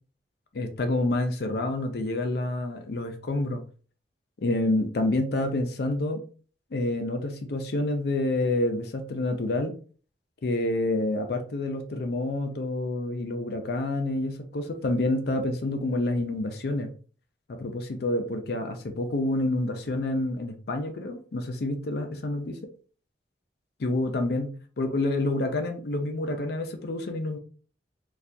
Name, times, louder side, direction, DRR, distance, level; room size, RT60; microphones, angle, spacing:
voice 1, 0.5-3.6 4.4-6.2 6.7-9.7 10.4-16.9 17.5-22.6 23.8-27.4, left 2 dB, 65° left, 6 dB, 0.5 m, -28 dB
4.3 x 2.4 x 2.6 m, 0.40 s
head